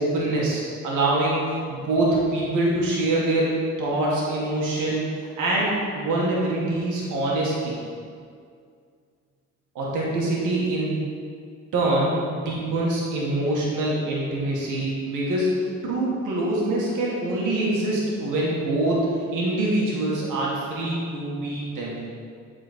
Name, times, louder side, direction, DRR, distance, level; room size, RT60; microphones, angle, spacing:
voice 1, 0.0-7.7 9.8-11.1 11.7-22.0, right 2 dB, 85° right, -5 dB, 1.9 m, -24 dB
8.2 x 4.4 x 4.4 m, 2.2 s
cardioid pair, 90°, 30 cm